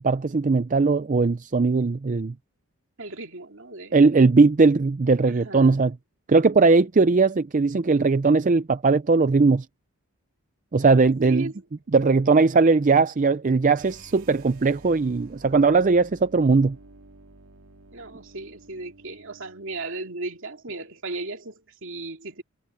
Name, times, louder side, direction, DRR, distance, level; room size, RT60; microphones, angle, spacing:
voice 1, 0.0-2.3 3.9-5.9 6.3-9.7 10.7-11.5 11.9-16.8, right 4 dB, 35° right, 0.4 m, -19 dB
voice 2, 3.0-4.0 5.3-5.8 11.2-11.5 17.9-22.4, right 2 dB, 60° right, 2.6 m, -36 dB
sound 1, 13.7-19.9, right 2 dB, 80° right, 2.3 m, -50 dB
head